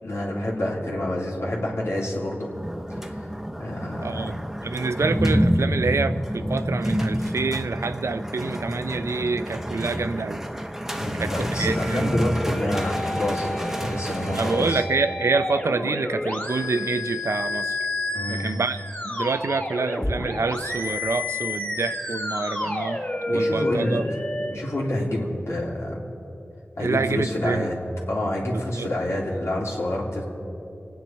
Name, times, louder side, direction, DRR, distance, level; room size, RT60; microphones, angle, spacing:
voice 1, 0.0-2.5 3.6-4.3 10.9-14.8 18.1-18.5 23.3-24.0 24.4-26.1 26.8-27.8 28.1-30.2, left 1 dB, 85° left, -3 dB, 2.8 m, -28 dB
sound 1, 2.4-14.7, equal, 10° right, 0.8 m, -28 dB
voice 2, 4.0-4.4 4.6-10.4 11.1-12.1 14.3-17.8 18.3-18.8 19.0-23.0 23.3-24.0 26.8-27.7 28.5-28.9, right 4 dB, 85° right, 11 dB, 0.5 m, -27 dB
sound 2, 11.6-24.6, left 2 dB, 40° left, 2.4 m, -30 dB
27.5 x 9.3 x 4.4 m, 2.9 s
wide cardioid pair, 70°, 5 cm